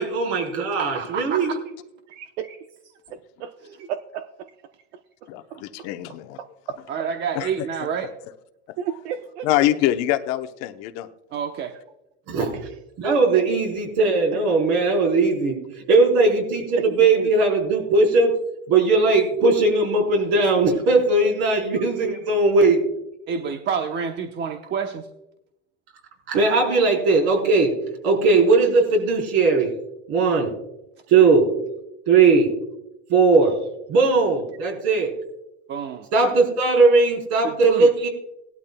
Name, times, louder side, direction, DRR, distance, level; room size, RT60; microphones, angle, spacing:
voice 1, 0.0-1.5 12.3-12.6 13.0-18.4 18.7-22.9 26.3-27.8 28.0-29.7 30.1-30.5 31.1-31.6 32.1-32.5 33.1-33.6 33.9-35.1 36.1-38.1, right 3 dB, 55° right, 1 dB, 4.3 m, -19 dB
voice 2, 0.8-1.6 6.9-8.1 11.3-11.7 23.3-25.1 26.6-26.8 35.7-36.1 37.4-38.1, right 6 dB, 35° right, 5 dB, 0.9 m, -28 dB
voice 3, 2.1-2.5 3.1-4.5 4.9-5.0 5.5-5.9 6.4-7.1 8.8-9.5 13.0-13.5 14.3-14.4 16.8-17.3 21.6-21.9, right 8 dB, 75° right, 9 dB, 0.8 m, -33 dB
voice 4, 5.3-6.4 7.3-7.5 9.4-11.1, left 13 dB, 50° left, 8 dB, 0.9 m, -24 dB
18.5 x 12.0 x 2.3 m, 0.88 s
supercardioid pair, 130°, 33 cm